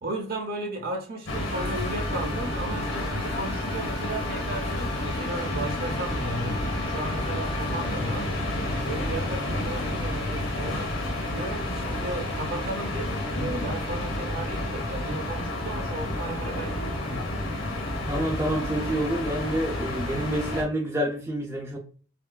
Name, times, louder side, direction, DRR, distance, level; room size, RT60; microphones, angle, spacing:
voice 1, 0.0-8.3 8.9-10.9 11.3-17.3, right 2 dB, 50° right, 0.8 m, -35 dB
windy calm atmosphere in a berlin backyard, 1.3-20.6, left 1 dB, 85° left, 1.3 m, -30 dB
Wind instrument woodwind instrument, 1.5-8.0, left 3 dB, 30° left, 1.0 m, -40 dB
voice 2, 18.0-21.8, right 1 dB, 15° right, 0.5 m, -28 dB
4.4 x 2.1 x 2.3 m
head